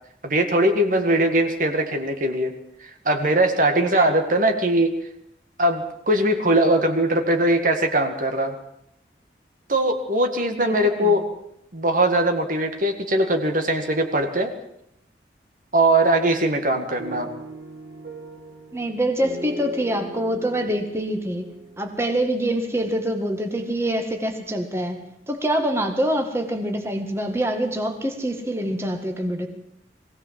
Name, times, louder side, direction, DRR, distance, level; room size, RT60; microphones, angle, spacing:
voice 1, 0.2-2.5 3.1-4.9 5.6-8.5 9.7-11.2 11.7-14.5 15.7-17.3, right 1 dB, 50° right, 6 dB, 2.0 m, -20 dB
voice 2, 10.6-11.2 18.7-21.5 21.8-25.0 25.3-29.5, right 1 dB, 15° right, 4 dB, 1.8 m, -25 dB
sound 1, 17.0-23.0, right 2 dB, 70° right, 2.2 m, -39 dB
22.0 x 16.5 x 7.6 m, 0.76 s
head